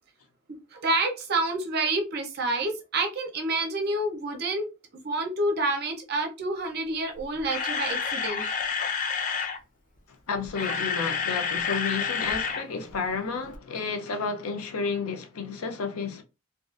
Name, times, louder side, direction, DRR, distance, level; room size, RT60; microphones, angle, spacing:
voice 1, 0.5-4.7 4.9-8.5, right 2 dB, 50° right, 0.6 m, -28 dB
Camera, 7.2-9.6 10.4-12.6 12.9-13.1 13.5-13.6, left 6 dB, 35° left, 0.4 m, -29 dB
voice 2, 10.3-16.2, left 4 dB, 90° left, 0.5 m, -31 dB
2.6 x 2.3 x 2.4 m
head